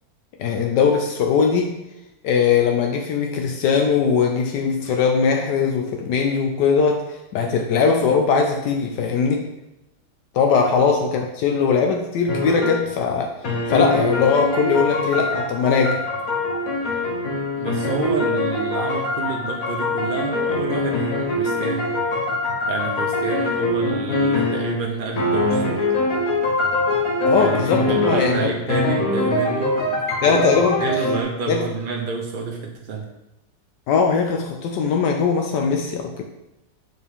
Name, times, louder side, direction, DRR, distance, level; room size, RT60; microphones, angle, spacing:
voice 1, 0.4-1.8 2.2-9.5 10.3-13.3 13.7-16.0 27.3-28.5 30.2-30.9 31.5-31.6 33.9-36.2, left 5 dB, 80° left, 2 dB, 1.2 m, -20 dB
sound 1, 12.3-12.9 13.4-24.9 25.2-31.2, left 2 dB, 55° left, 1.3 m, -23 dB
voice 2, 17.6-22.0 22.7-25.9 27.3-30.4 30.8-33.1, right 4 dB, 60° right, 0 dB, 0.5 m, -29 dB
6.6 x 4.3 x 3.5 m, 0.93 s
omnidirectional pair, 1.9 m